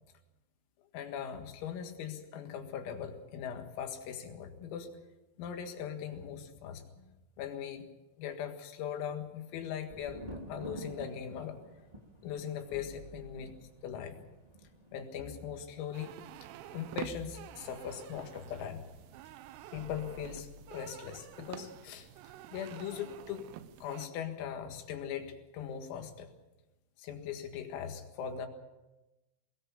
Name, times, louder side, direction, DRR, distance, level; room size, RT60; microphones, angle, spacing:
voice 1, 0.9-4.9 5.4-7.1 7.4-7.8 8.2-10.2 10.5-11.6 12.2-13.5 13.8-14.2 14.9-16.1 16.7-18.9 19.7-22.1 22.5-23.5 23.8-26.3 27.0-28.5, left 8 dB, 85° left, 5 dB, 4.5 m, -40 dB
Thunder, 9.9-19.5 19.8-20.5, right 1 dB, 40° right, 0.5 m, -51 dB
sound 1, 12.7-13.8 15.2-16.2 17.0-18.1 19.7-21.2, left 4 dB, 70° left, 3.8 m, -53 dB
sound 2, 15.9-24.1, right 12 dB, 80° right, 3.5 m, -48 dB
22.5 x 19.0 x 7.0 m, 1.1 s
omnidirectional pair, 5.9 m